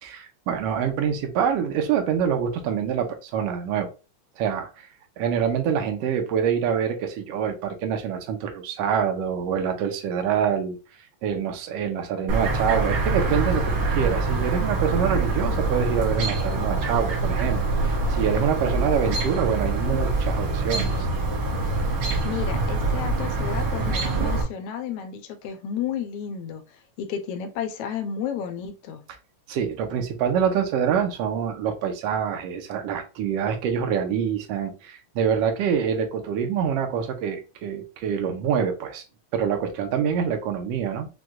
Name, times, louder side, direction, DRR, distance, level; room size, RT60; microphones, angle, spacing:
voice 1, 0.1-3.9 4.4-4.9 5.2-10.8 11.2-21.1 29.5-39.0 39.3-41.1, right 7 dB, 75° right, 1.5 m, -26 dB
Chirp tweet, 12.3-24.4, right 3 dB, 60° right, 1.6 m, -25 dB
voice 2, 22.2-29.0, left 8 dB, 90° left, 1.4 m, -32 dB
6.1 x 2.2 x 2.4 m
omnidirectional pair, 3.3 m